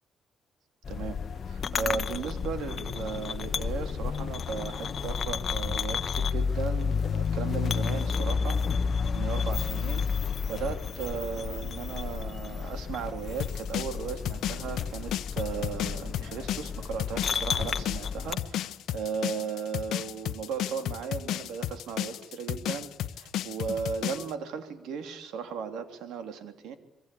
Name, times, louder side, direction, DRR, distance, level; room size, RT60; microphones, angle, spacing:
sound 1, 0.8-18.3, left 6 dB, 45° left, 1.1 m, -31 dB
voice 1, 0.9-1.2 1.5-8.6 9.1-26.7, right 6 dB, 90° right, 7 dB, 3.3 m, -36 dB
sound 2, 13.4-24.3, left 12 dB, 85° left, 1.0 m, -33 dB
27.5 x 23.0 x 8.6 m, 0.82 s
cardioid pair, 110°, 0 cm